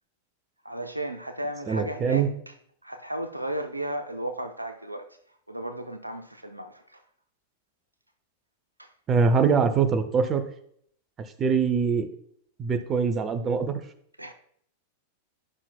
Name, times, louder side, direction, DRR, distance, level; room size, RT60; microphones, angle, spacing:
voice 1, 0.6-2.5 2.8-5.2 5.5-7.0 8.8-8.9 14.2-14.3, right 1 dB, 85° right, 0.5 m, -34 dB
voice 2, 1.7-2.3 9.1-10.4 11.2-12.1 12.6-13.8, right 5 dB, 25° right, 0.7 m, -23 dB
11.0 x 5.7 x 2.2 m
figure-of-eight pair, 90°, 0 cm